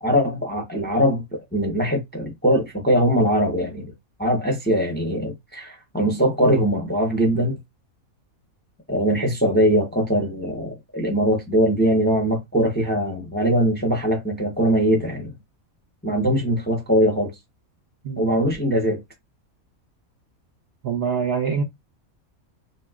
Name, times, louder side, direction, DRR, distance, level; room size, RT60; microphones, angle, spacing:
voice 1, 0.0-3.9 4.2-7.6 8.9-15.3 16.0-17.3 18.2-19.0, equal, 10° left, 0.5 m, -21 dB
voice 2, 20.8-21.6, right 6 dB, 60° right, 0.7 m, -24 dB
3.0 x 2.9 x 2.3 m
omnidirectional pair, 1.5 m